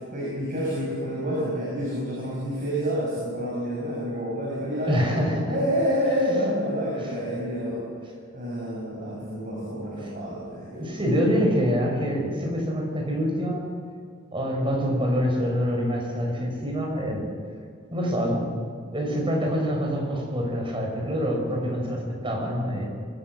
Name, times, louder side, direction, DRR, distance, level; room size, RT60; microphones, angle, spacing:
voice 1, 0.0-5.2 5.5-7.8 8.3-11.0, equal, 40° right, -5 dB, 6.2 m, -28 dB
voice 2, 4.9-5.5 10.7-13.7 14.3-17.3 17.9-18.6 18.9-22.9, equal, 25° right, 0 dB, 5.2 m, -26 dB
24.5 x 15.0 x 7.6 m, 2.2 s
head